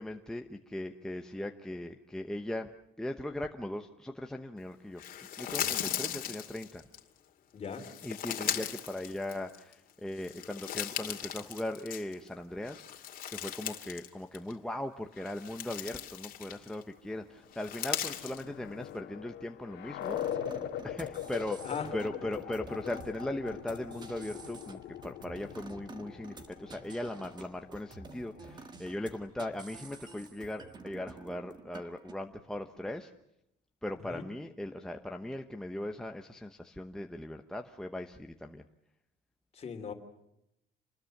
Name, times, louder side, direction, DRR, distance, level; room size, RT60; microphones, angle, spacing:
voice 1, 0.0-2.7 3.0-5.0 5.4-6.8 8.0-20.2 20.8-33.1 33.8-38.6, left 1 dB, 5° left, 4 dB, 0.9 m, -39 dB
sound 1, 5.0-7.0 7.7-9.7 10.1-12.3 12.6-14.1 14.3-14.5 15.1-16.8 17.5-18.4, left 10 dB, 50° left, 2.4 m, -38 dB
voice 2, 7.5-7.9 21.6-21.9 34.0-34.2 39.5-39.9, left 6 dB, 35° left, 6 dB, 3.1 m, -38 dB
sound 2, 17.4-28.8, left 10 dB, 70° left, 1.9 m, -42 dB
sound 3, 20.0-32.1, right 3 dB, 25° right, 1.7 m, -50 dB
27.5 x 20.5 x 6.6 m, 0.81 s
cardioid pair, 145°, 18 cm